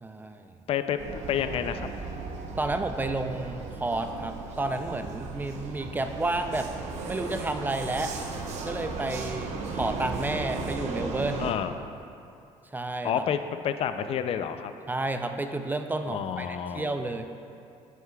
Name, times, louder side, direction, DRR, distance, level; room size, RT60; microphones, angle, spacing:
voice 1, 0.0-0.5 2.6-6.7 7.1-8.2 8.6-11.5 12.7-13.2 14.9-17.2, right 2 dB, 15° right, 6 dB, 0.4 m, -31 dB
voice 2, 0.7-1.9 11.4-11.7 13.0-13.4 13.6-14.7 16.1-17.0, left 9 dB, 50° left, 10 dB, 0.4 m, -29 dB
Vehicle, 1.0-11.5, right 3 dB, 65° right, 0.9 m, -36 dB
9.2 x 8.2 x 2.3 m, 2.5 s
cardioid pair, 95°, 13 cm